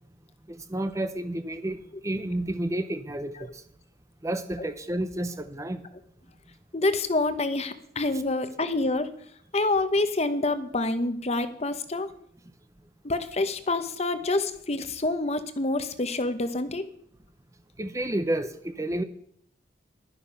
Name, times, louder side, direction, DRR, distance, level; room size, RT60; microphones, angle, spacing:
voice 1, 0.5-1.8 2.0-3.6 4.2-5.9 17.8-19.0, right 1 dB, 15° right, 10 dB, 0.7 m, -30 dB
voice 2, 6.7-9.1 9.5-12.1 13.0-16.9, left 2 dB, 35° left, 11 dB, 0.9 m, -27 dB
11.5 x 9.8 x 5.7 m, 0.67 s
head